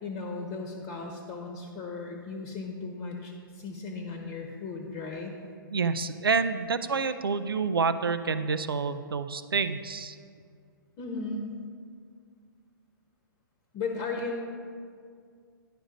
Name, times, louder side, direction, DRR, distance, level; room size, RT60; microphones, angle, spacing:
voice 1, 0.0-5.3 11.0-11.5 13.7-14.4, left 3 dB, 30° left, 2 dB, 1.0 m, -36 dB
voice 2, 5.7-10.2, right 5 dB, 90° right, 11 dB, 0.4 m, -28 dB
10.0 x 5.1 x 5.1 m, 2.1 s
hypercardioid pair, 130°, 12 cm